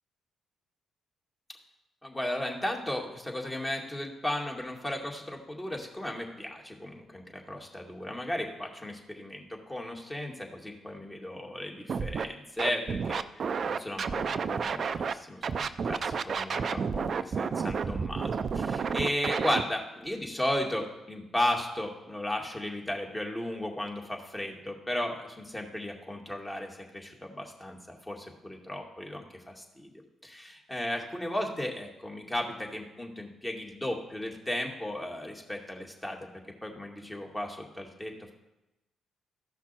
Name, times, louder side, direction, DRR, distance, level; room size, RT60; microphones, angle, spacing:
voice 1, 2.0-29.9 30.2-36.3 36.6-38.1, left 1 dB, 15° left, 1 dB, 2.3 m, -35 dB
Scratching (performance technique), 11.9-12.2 12.6-15.1 15.4-19.6, right 6 dB, 55° right, 0.5 m, -30 dB
14.5 x 5.9 x 4.5 m, 0.96 s
hypercardioid pair, 50°, 0 cm